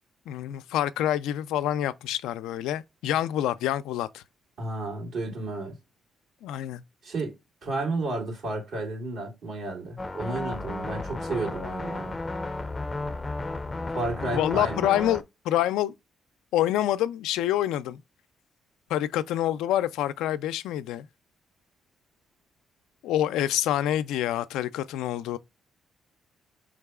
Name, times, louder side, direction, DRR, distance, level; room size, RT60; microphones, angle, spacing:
voice 1, 0.3-4.2 6.4-6.8 14.2-15.9 16.5-18.0 18.9-21.1 23.0-25.4, left 12 dB, 85° left, 0.3 m, -27 dB
voice 2, 4.6-5.7 7.0-7.3 7.6-12.2 13.9-14.9, right 2 dB, 70° right, 2.4 m, -32 dB
sound 1, 10.0-15.2, left 2 dB, 25° left, 0.5 m, -33 dB
4.6 x 3.7 x 2.3 m
supercardioid pair, 65°, 0 cm